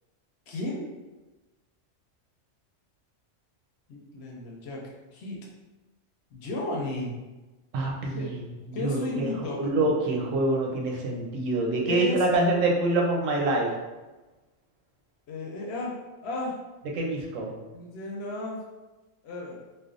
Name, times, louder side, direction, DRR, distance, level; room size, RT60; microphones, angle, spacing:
voice 1, 0.5-0.9 3.9-4.8 5.1-5.4 6.3-7.1 8.1-8.3 8.7-9.6 11.9-12.2 15.3-15.9 16.2-16.5 17.7-18.6 19.2-19.6, left 2 dB, 65° left, -2 dB, 0.7 m, -33 dB
voice 2, 7.7-8.4 8.7-13.7 16.9-17.5, right 2 dB, 85° right, 0 dB, 1.0 m, -26 dB
3.2 x 2.0 x 2.4 m, 1.1 s
omnidirectional pair, 1.3 m